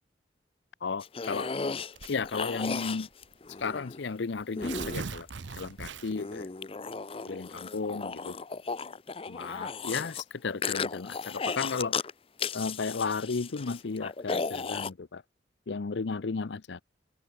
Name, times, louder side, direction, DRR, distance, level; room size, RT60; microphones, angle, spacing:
voice 1, 0.8-1.5 2.1-3.1 3.6-5.3 5.5-6.5 7.3-8.4 9.3-11.9 12.5-15.2 15.7-16.8, left 4 dB, 80° left, 0.6 m, -34 dB
sound 1, 1.0-4.0 4.6-5.5 6.1-10.2 10.6-12.1 12.4-14.9, left 5 dB, 30° left, 0.6 m, -35 dB
Tearing, 2.0-2.4 3.2-3.3 3.6-3.7 4.4-6.3, right 5 dB, 85° right, 0.8 m, -39 dB
open air
head